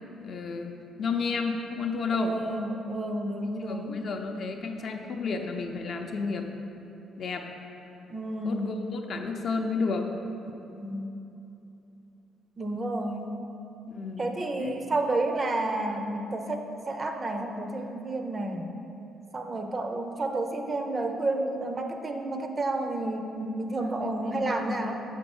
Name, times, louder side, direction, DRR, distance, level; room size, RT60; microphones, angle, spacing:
voice 1, 0.2-2.4 3.4-6.6 7.2-7.5 8.4-10.1 13.9-14.8 24.0-25.0, left 4 dB, 40° left, 4 dB, 0.6 m, -32 dB
voice 2, 2.1-4.0 8.1-8.8 10.8-11.1 12.6-13.4 14.2-18.7 19.3-25.0, right 2 dB, 20° right, 4 dB, 0.5 m, -31 dB
6.9 x 5.2 x 7.0 m, 2.9 s
cardioid pair, 170°, 0 cm